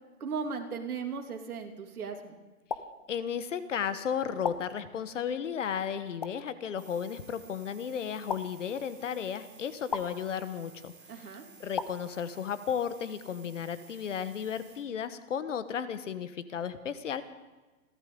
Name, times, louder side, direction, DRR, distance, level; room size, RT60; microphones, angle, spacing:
voice 1, 0.2-2.4 11.1-11.4, right 5 dB, 80° right, 3 dB, 2.7 m, -37 dB
sound 1, 2.7-2.8 4.4-4.6 6.2-6.3 8.3-8.4 9.9-10.0 11.7-11.9, left 6 dB, 30° left, 0.5 m, -32 dB
voice 2, 3.1-17.2, left 8 dB, 55° left, 12 dB, 1.2 m, -34 dB
sound 2, 6.8-14.7, right 5 dB, 35° right, 7.2 m, -55 dB
29.5 x 12.5 x 3.8 m, 1.2 s
hypercardioid pair, 170°, 43 cm